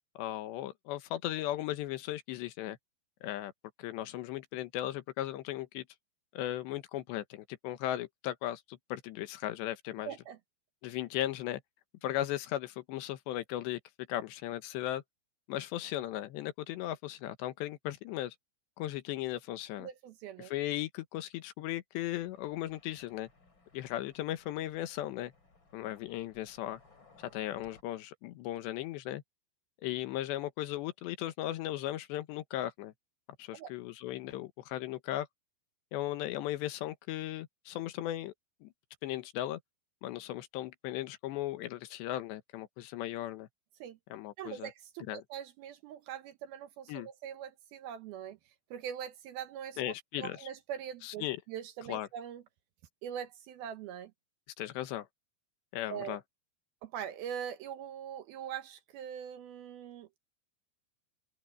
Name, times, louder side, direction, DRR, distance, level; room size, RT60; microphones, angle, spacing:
voice 1, 0.2-2.8 3.2-3.5 3.8-5.8 6.3-10.2 10.8-11.6 12.0-13.8 14.1-15.0 15.5-18.3 18.8-19.9 20.4-23.3 23.7-25.3 25.7-26.8 27.3-29.2 29.8-32.9 33.4-35.3 35.9-38.3 38.6-38.7 39.0-39.6 40.0-43.5 44.1-44.7 45.1-45.2 46.9-47.1 49.8-50.5 51.0-51.4 51.9-52.1 54.6-55.1 55.7-56.2, left 14 dB, 80° left, 3.3 m, -37 dB
voice 2, 10.1-10.4 19.8-20.5 33.5-33.7 43.8-44.0 44.4-48.4 48.7-52.4 53.0-54.1 55.9-56.2 56.8-60.1, right 9 dB, 75° right, 2.5 m, -42 dB
sound 1, 22.1-27.8, left 3 dB, 25° left, 4.5 m, -62 dB
omnidirectional pair, 5.1 m